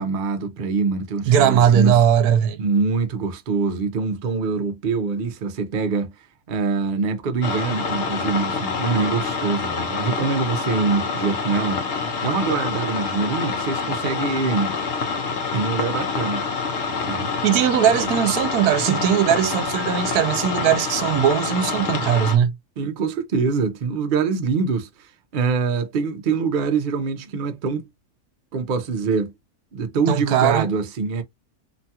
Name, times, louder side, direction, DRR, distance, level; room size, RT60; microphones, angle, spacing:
voice 1, 0.0-2.0 2.6-6.1 6.5-11.8 12.2-14.7 15.5-16.5 17.1-17.3 22.8-27.8 28.5-29.3 29.7-31.2, right 4 dB, 55° right, 0.5 m, -24 dB
voice 2, 1.3-2.6 17.4-22.6 30.1-30.6, right 9 dB, 80° right, 1.1 m, -19 dB
sound 1, 7.4-22.4, left 4 dB, 60° left, 0.8 m, -26 dB
3.0 x 2.3 x 2.7 m
omnidirectional pair, 1.6 m